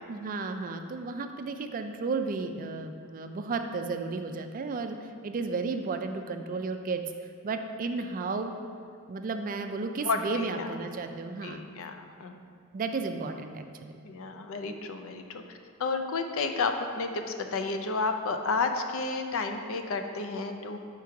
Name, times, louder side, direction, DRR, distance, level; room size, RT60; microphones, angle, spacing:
voice 1, 0.1-5.0 5.2-7.0 7.4-8.5 9.1-11.6 12.7-14.0, right 4 dB, 40° right, 7 dB, 0.4 m, -33 dB
voice 2, 10.0-10.7 11.4-12.3 14.0-20.8, left 4 dB, 65° left, 6 dB, 0.5 m, -31 dB
6.0 x 4.5 x 4.7 m, 2.2 s
head